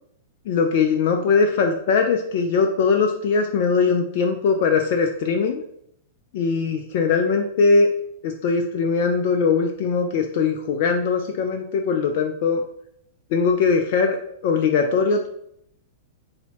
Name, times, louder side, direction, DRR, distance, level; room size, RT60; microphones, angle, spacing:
voice 1, 0.5-5.6 6.3-7.9 8.2-12.6 13.3-14.2 14.4-15.3, left 5 dB, 50° left, 4 dB, 0.4 m, -20 dB
3.9 x 2.7 x 2.9 m, 0.71 s
figure-of-eight pair, 100°, 0 cm